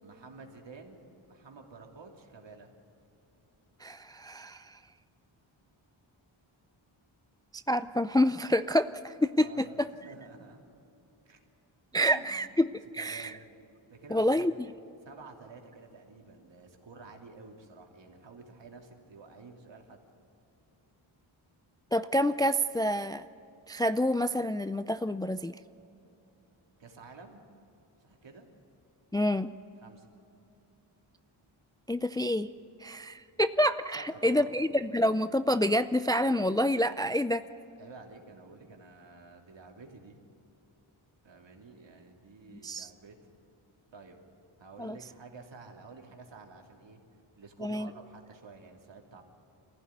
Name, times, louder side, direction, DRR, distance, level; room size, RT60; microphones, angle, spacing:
voice 1, 0.0-2.7 9.4-10.7 11.2-11.4 12.0-12.5 13.0-13.5 13.9-14.5 15.0-20.0 26.8-27.4 28.0-28.5 29.8-30.1 33.9-34.6 37.8-40.2 41.2-43.4 43.9-44.2 44.6-47.0 47.4-49.2, right 4 dB, 60° right, 2 dB, 3.0 m, -50 dB
voice 2, 3.8-4.8 7.7-9.9 11.9-13.3 14.1-14.5 21.9-23.2 23.7-25.5 29.1-29.5 31.9-32.5 32.8-37.4 42.6-42.9 44.8-45.0 47.6-47.9, equal, 10° left, 11 dB, 0.4 m, -28 dB
23.0 x 15.5 x 9.7 m, 2.9 s
cardioid pair, 75°, 48 cm